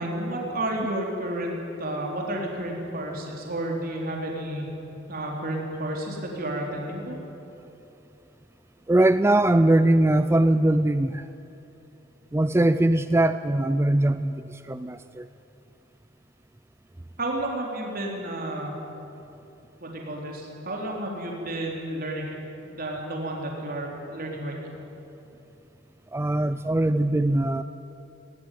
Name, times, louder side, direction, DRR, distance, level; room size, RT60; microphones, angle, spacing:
voice 1, 0.0-4.7 5.1-7.2 17.2-18.7 19.8-22.4 22.6-24.6, right 1 dB, 50° right, -1 dB, 4.1 m, -31 dB
voice 2, 8.9-11.3 12.3-15.3 26.1-27.6, right 1 dB, 15° right, 12 dB, 0.4 m, -21 dB
19.0 x 19.0 x 9.5 m, 3.0 s
head